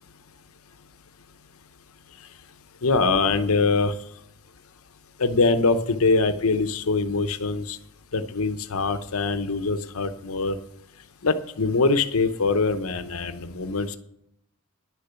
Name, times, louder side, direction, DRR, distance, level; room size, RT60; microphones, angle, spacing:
voice 1, 2.8-3.9 5.2-7.8 8.1-10.6 11.2-14.0, left 3 dB, 70° left, 10 dB, 0.8 m, -23 dB
11.0 x 6.8 x 8.1 m, 0.78 s
head